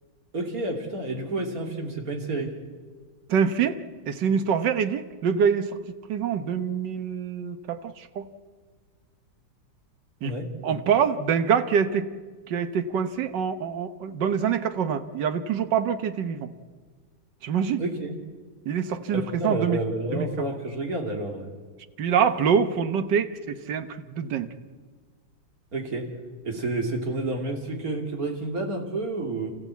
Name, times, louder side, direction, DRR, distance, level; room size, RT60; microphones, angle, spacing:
voice 1, 0.3-2.5 10.2-10.5 17.8-18.1 19.1-21.5 25.7-26.1 26.4-29.5, right 2 dB, 40° right, 2 dB, 3.0 m, -30 dB
voice 2, 3.3-3.8 4.1-5.8 6.1-8.3 10.2-10.3 10.6-12.1 12.5-16.5 17.4-17.8 18.6-19.8 20.1-20.3 22.0-24.5, right 7 dB, 60° right, 10 dB, 1.6 m, -25 dB
28.5 x 15.0 x 8.3 m, 1.5 s
omnidirectional pair, 2.3 m